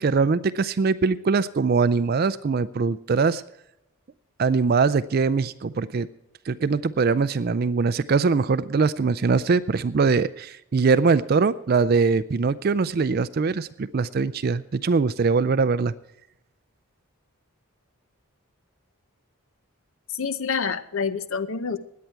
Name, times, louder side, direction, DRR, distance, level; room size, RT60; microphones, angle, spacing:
voice 1, 0.0-3.4 4.4-6.1 6.5-15.9, right 4 dB, 45° right, 15 dB, 0.4 m, -22 dB
voice 2, 20.1-21.8, left 5 dB, 65° left, 13 dB, 0.7 m, -27 dB
17.0 x 10.5 x 4.5 m, 0.86 s
head